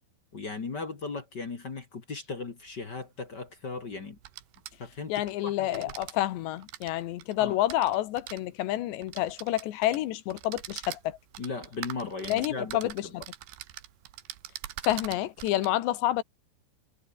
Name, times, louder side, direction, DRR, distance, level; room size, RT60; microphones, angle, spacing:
voice 1, 0.3-4.2 4.8-5.1 5.4-5.9 7.4-7.6 11.4-13.1, left 4 dB, 35° left, 1.8 m, -37 dB
sound 1, 2.7-2.8 4.1-5.3 5.6-6.1 6.6-8.4 9.0-10.0 10.3-15.7, right 14 dB, 75° right, 3.4 m, -43 dB
voice 2, 5.1-11.2 12.3-13.1 14.8-16.2, left 14 dB, 85° left, 3.6 m, -29 dB
omnidirectional pair, 4.9 m